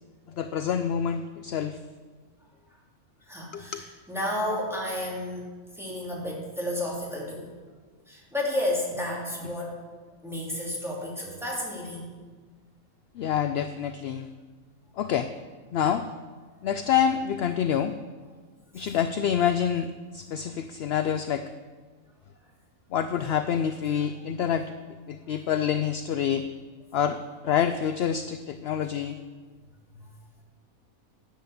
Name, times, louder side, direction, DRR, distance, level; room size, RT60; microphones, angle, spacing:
voice 1, 0.3-1.8 3.5-3.8 13.1-14.3 15.0-15.3 15.7-16.1 16.6-18.0 18.7-21.5 22.9-24.8 25.1-26.5 26.9-29.2, left 8 dB, 65° left, 11 dB, 0.6 m, -27 dB
voice 2, 3.3-5.5 5.7-7.5 8.1-9.7 10.2-12.1 18.8-18.9, left 1 dB, ahead, -4 dB, 2.8 m, -31 dB
11.5 x 8.2 x 7.1 m, 1.4 s
omnidirectional pair, 1.4 m